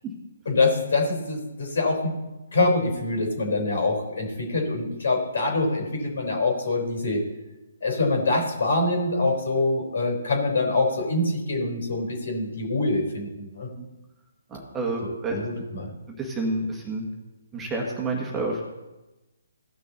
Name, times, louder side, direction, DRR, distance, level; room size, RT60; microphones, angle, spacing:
voice 1, 0.5-2.2 2.5-7.3 7.8-13.7 15.3-15.9, left 2 dB, 65° left, 2 dB, 3.9 m, -25 dB
voice 2, 14.5-15.4 16.1-17.1 17.5-18.6, right 2 dB, 15° right, -1 dB, 1.7 m, -29 dB
17.0 x 6.1 x 4.1 m, 1.0 s
figure-of-eight pair, 140°, 0 cm